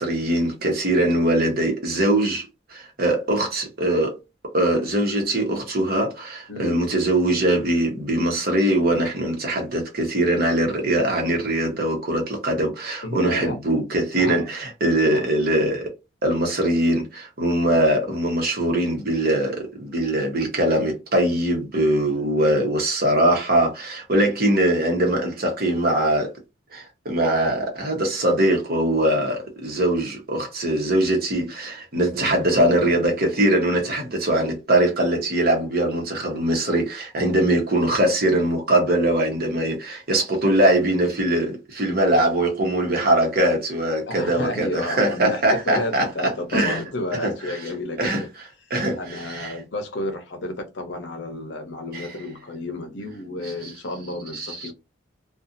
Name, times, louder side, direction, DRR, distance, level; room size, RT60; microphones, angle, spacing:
voice 1, 0.0-4.2 4.5-15.9 16.2-26.3 26.7-46.8 47.2-47.6 48.0-48.2 48.7-49.6 51.9-52.1 53.6-53.7 54.3-54.7, right 1 dB, 50° right, 1.0 m, -22 dB
voice 2, 6.5-6.8 13.0-13.6 14.2-14.5 15.1-15.3 44.1-48.3 49.0-54.7, left 1 dB, 60° left, 0.7 m, -31 dB
2.6 x 2.4 x 2.5 m
head